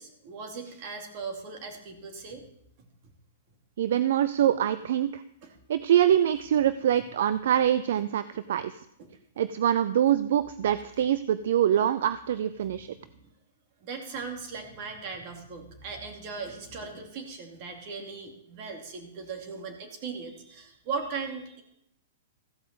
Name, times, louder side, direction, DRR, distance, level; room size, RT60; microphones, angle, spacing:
voice 1, 0.0-2.4 5.4-5.5 12.6-12.7 13.0-13.2 13.8-21.6, right 4 dB, 45° right, 3 dB, 2.8 m, -38 dB
voice 2, 3.8-5.2 5.7-8.8 9.4-12.9, right 10 dB, 70° right, 14 dB, 0.4 m, -24 dB
14.5 x 5.1 x 7.6 m, 0.76 s
hypercardioid pair, 130°, 0 cm